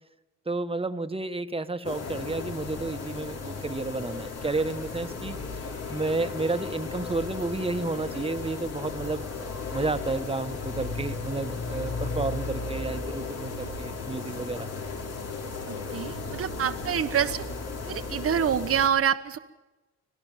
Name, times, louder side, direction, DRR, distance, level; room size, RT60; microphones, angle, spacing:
voice 1, 0.4-5.4 5.9-9.3 9.7-14.7 16.0-16.1, right 3 dB, 20° right, 8 dB, 1.6 m, -31 dB
sound 1, 1.8-18.9, left 4 dB, 55° left, 3.7 m, -35 dB
voice 2, 15.7-17.4 17.9-19.4, right 8 dB, 50° right, 5 dB, 1.3 m, -26 dB
26.0 x 17.0 x 7.5 m, 1.1 s
cardioid pair, 90°, 30 cm